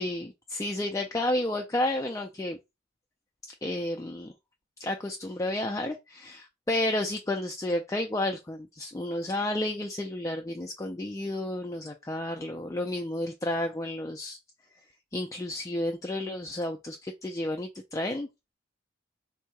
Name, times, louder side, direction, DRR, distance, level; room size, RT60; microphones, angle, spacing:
voice 1, 0.0-2.6 3.6-4.3 4.8-14.4 15.1-18.3, left 1 dB, 15° left, 0.4 m, -31 dB
3.7 x 2.7 x 4.5 m
head